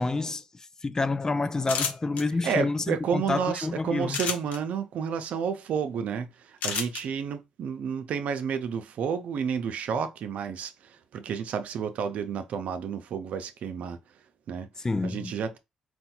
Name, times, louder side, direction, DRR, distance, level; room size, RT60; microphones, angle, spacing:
voice 1, 0.0-4.2 14.8-15.3, left 3 dB, 25° left, 0.5 m, -28 dB
sound 1, 1.6-2.2 4.1-4.6 6.6-7.0, left 6 dB, 85° left, 0.8 m, -29 dB
voice 2, 2.4-14.0 14.5-14.7 15.0-15.6, right 7 dB, 75° right, 0.6 m, -31 dB
4.4 x 2.3 x 4.3 m
cardioid pair, 70°, 2 cm